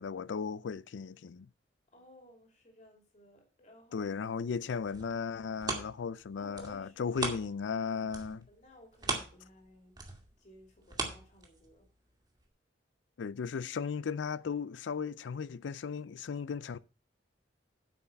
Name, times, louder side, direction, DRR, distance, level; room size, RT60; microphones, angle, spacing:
voice 1, 0.0-1.5 3.9-8.5 13.2-16.8, left 6 dB, 90° left, 0.4 m, -36 dB
voice 2, 1.9-4.1 6.4-7.2 8.5-9.9 10.4-11.9, equal, 40° left, 2.8 m, -57 dB
sound 1, 4.8-7.8 8.1-11.9 12.4-12.5, right 3 dB, 25° right, 2.0 m, -39 dB
8.6 x 5.6 x 6.8 m
head